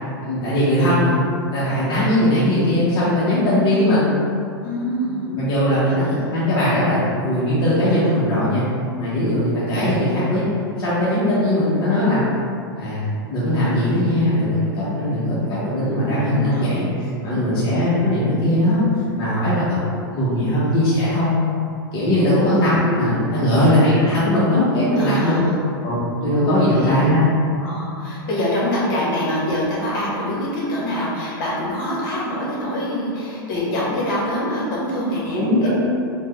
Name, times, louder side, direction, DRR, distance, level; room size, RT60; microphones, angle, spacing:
voice 1, 0.2-1.2 1.5-4.1 5.3-8.6 9.0-10.4 10.8-12.2 12.8-18.8 19.2-19.8 20.1-21.4 21.9-25.5 25.8-27.2 35.3-35.7, left 1 dB, 40° left, -10 dB, 0.8 m, -19 dB
voice 2, 4.6-5.4 5.8-6.3 16.4-16.9 17.3-17.6 19.3-19.7 22.3-22.5 23.4-23.7 25.0-25.6 26.6-26.9 27.6-35.7, left 1 dB, 55° left, -6 dB, 1.1 m, -25 dB
3.4 x 2.1 x 3.0 m, 2.4 s
hypercardioid pair, 115°, 13 cm